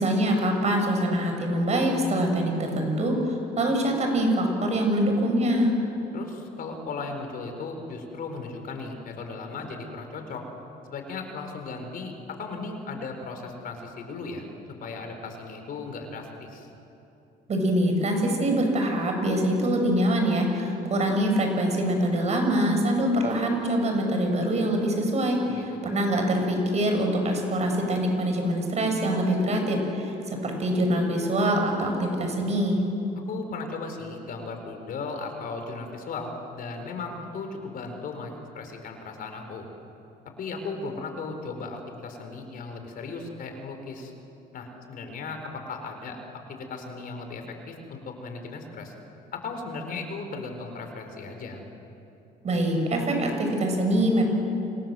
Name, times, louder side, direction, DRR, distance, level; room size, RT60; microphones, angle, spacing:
voice 1, 0.0-5.7 17.5-32.8 52.4-54.2, right 1 dB, 40° right, 3 dB, 7.1 m, -24 dB
voice 2, 6.1-10.4 10.9-14.5 14.8-16.7 25.5-25.9 33.3-39.7 40.4-44.1 44.5-46.2 46.5-48.9 49.3-51.6, left 4 dB, 60° left, 5 dB, 4.6 m, -36 dB
29.5 x 26.0 x 7.8 m, 2.9 s
cardioid pair, 110°, 17 cm